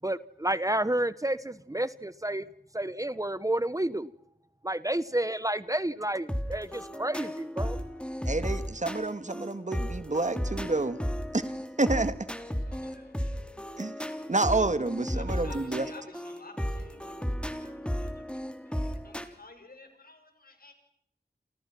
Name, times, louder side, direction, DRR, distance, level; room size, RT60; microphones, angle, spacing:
voice 1, 0.0-2.5 2.7-4.1 4.6-7.8, right 1 dB, 20° right, 1.0 m, -30 dB
sound 1, 6.3-19.2, equal, 5° left, 3.3 m, -34 dB
voice 2, 8.3-11.0 11.3-11.4 11.8-12.2 13.8-13.9 14.3-15.9, right 2 dB, 45° right, 1.9 m, -28 dB
voice 3, 12.5-13.7 15.1-20.7, left 2 dB, 65° left, 6.9 m, -52 dB
29.0 x 27.5 x 6.0 m
cardioid pair, 45°, 17 cm